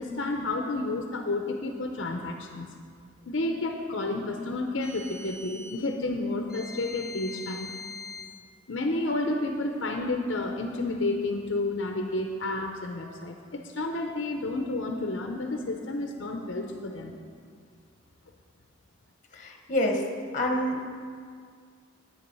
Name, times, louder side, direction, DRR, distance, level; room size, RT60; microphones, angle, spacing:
voice 1, 0.0-2.7 3.3-7.7 8.7-17.2, left 2 dB, 75° left, 3 dB, 0.7 m, -31 dB
sound 1, 4.8-5.8 6.5-8.3, left 3 dB, 5° right, 1.1 m, -42 dB
voice 2, 19.3-20.0 20.3-20.8, left 1 dB, 40° left, 2 dB, 1.3 m, -27 dB
10.0 x 8.4 x 5.4 m, 2.1 s
head